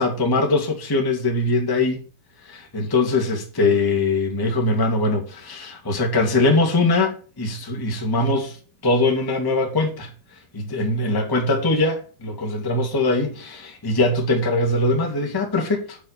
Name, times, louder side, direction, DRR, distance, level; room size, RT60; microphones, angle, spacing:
voice 1, 0.0-2.0 2.4-8.6 8.8-10.1 10.5-16.0, left 2 dB, 10° left, 1.5 m, -22 dB
8.8 x 7.2 x 5.8 m
omnidirectional pair, 5.1 m